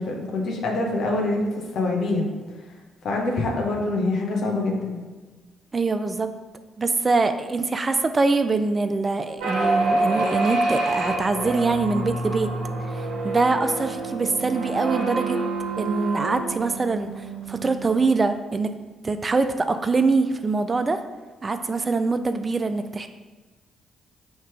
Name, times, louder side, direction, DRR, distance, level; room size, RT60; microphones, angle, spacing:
voice 1, 0.0-2.3 3.0-5.0, left 2 dB, 65° left, 1 dB, 0.8 m, -25 dB
voice 2, 5.7-6.3 6.8-12.5 12.9-15.4 15.8-18.7 19.0-21.0 21.4-23.1, right 3 dB, 35° right, 9 dB, 0.3 m, -24 dB
sound 1, 9.4-18.1, right 2 dB, 75° right, 0.9 m, -27 dB
3.2 x 2.9 x 4.6 m, 1.3 s
hypercardioid pair, 50°, 0 cm